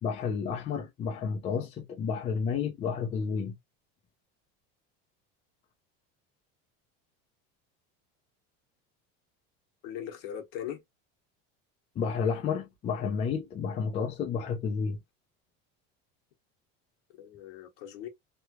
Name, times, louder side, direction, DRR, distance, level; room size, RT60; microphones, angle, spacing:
voice 1, 0.0-3.5 12.0-15.0, left 6 dB, 20° left, 0.4 m, -31 dB
voice 2, 9.8-10.8 17.2-18.1, left 10 dB, 60° left, 1.1 m, -39 dB
3.2 x 2.2 x 2.9 m
cardioid pair, 180°, 29 cm